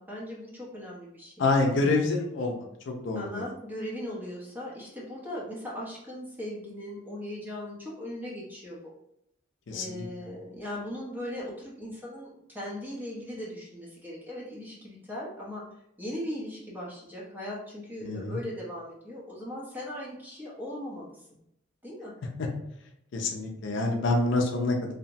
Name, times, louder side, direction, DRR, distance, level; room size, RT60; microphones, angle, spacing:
voice 1, 0.0-2.3 3.1-8.9 9.7-15.6 16.0-21.2 21.8-22.2, left 1 dB, 10° right, -5 dB, 0.7 m, -39 dB
voice 2, 1.4-3.4 9.7-10.0 18.0-18.4 23.1-24.9, left 2 dB, 65° left, 1 dB, 0.5 m, -27 dB
2.7 x 2.0 x 2.7 m, 0.77 s
head